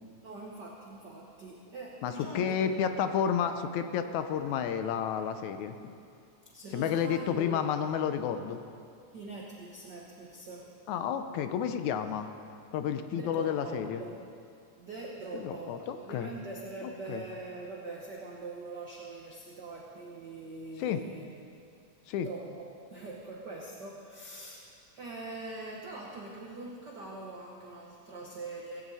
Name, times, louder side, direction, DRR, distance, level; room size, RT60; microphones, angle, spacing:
voice 1, 0.2-2.9 6.4-7.7 9.1-10.7 13.1-14.3 14.8-21.3 22.2-22.6 22.9-24.7 25.0-28.8, right 2 dB, 50° right, -2 dB, 1.3 m, -43 dB
voice 2, 2.0-5.9 6.7-8.6 10.9-12.3 12.7-14.0 15.3-16.3 16.8-17.2 20.8-21.0 22.1-22.3, left 8 dB, 75° left, 8 dB, 2.0 m, -31 dB
17.0 x 16.0 x 4.2 m, 2.4 s
omnidirectional pair, 3.5 m